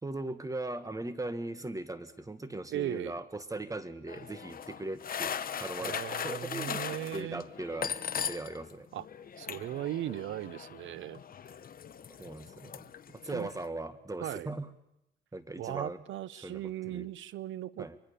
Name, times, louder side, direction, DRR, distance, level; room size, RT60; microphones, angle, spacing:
voice 1, 0.0-6.8 7.1-8.9 12.2-14.7 15.3-16.0 16.3-17.1 17.8-18.0, right 2 dB, 15° right, 1.7 m, -39 dB
voice 2, 2.7-3.2 5.8-7.4 8.9-9.1 9.4-11.2 13.3-13.5 14.2-14.5 15.6-17.9, right 13 dB, 80° right, 0.9 m, -37 dB
sound 1, 4.1-8.7 9.0-13.7, left 8 dB, 45° left, 1.0 m, -39 dB
24.5 x 23.0 x 7.0 m
cardioid pair, 90°, 20 cm